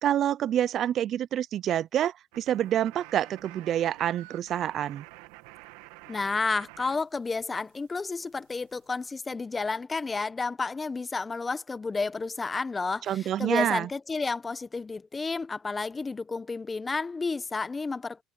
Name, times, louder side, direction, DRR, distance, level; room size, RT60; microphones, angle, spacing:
voice 1, 0.0-5.1 13.1-13.9, right 11 dB, 55° right, 0.5 m, -27 dB
sound 1, 2.3-7.0 7.2-9.2, right 20 dB, 85° right, 2.4 m, -50 dB
voice 2, 6.1-18.2, left 4 dB, 20° left, 1.0 m, -31 dB
supercardioid pair, 90°, 0 cm